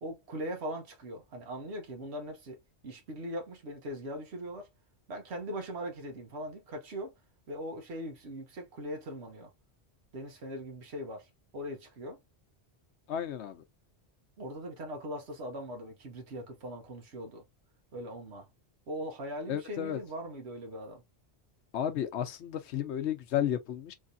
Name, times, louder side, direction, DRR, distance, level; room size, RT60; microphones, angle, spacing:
voice 1, 0.0-4.7 5.1-7.1 7.5-9.5 10.1-12.2 14.4-17.4 17.9-18.5 18.9-21.0, equal, 75° right, 1.3 m, -40 dB
voice 2, 13.1-13.6 19.5-20.0 21.7-23.9, left 10 dB, 90° left, 0.9 m, -32 dB
3.4 x 3.2 x 2.6 m
omnidirectional pair, 1.1 m